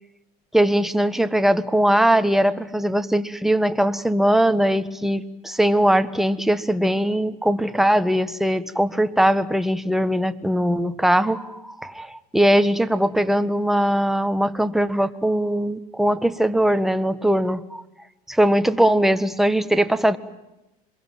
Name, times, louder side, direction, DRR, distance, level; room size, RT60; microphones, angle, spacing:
voice 1, 0.5-17.8 18.3-20.2, right 1 dB, ahead, 10 dB, 1.5 m, -20 dB
26.5 x 22.5 x 9.2 m, 0.93 s
supercardioid pair, 100°, 20 cm